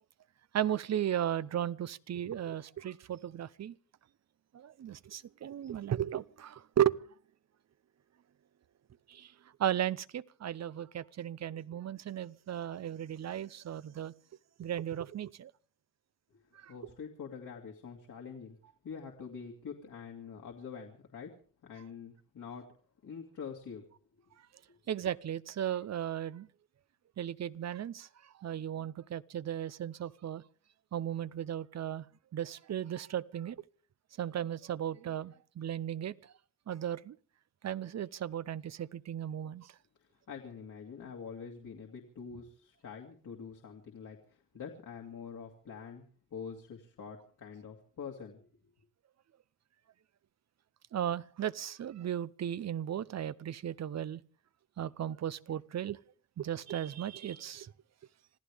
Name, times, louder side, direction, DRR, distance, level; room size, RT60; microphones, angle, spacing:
voice 1, 0.5-3.7 4.5-6.9 9.1-9.3 9.6-14.1 14.6-15.5 16.5-16.7 24.9-26.5 27.2-30.4 30.9-32.1 32.3-33.6 34.2-36.3 36.7-37.2 37.6-39.7 50.9-54.2 54.8-56.0 56.4-57.7, right 10 dB, 55° right, 0.7 m, -35 dB
voice 2, 16.7-18.6 18.8-21.3 21.6-22.7 23.0-23.8 24.7-24.8 40.0-48.5, left 6 dB, 75° left, 2.4 m, -45 dB
26.5 x 15.0 x 3.5 m
cardioid pair, 80°, 31 cm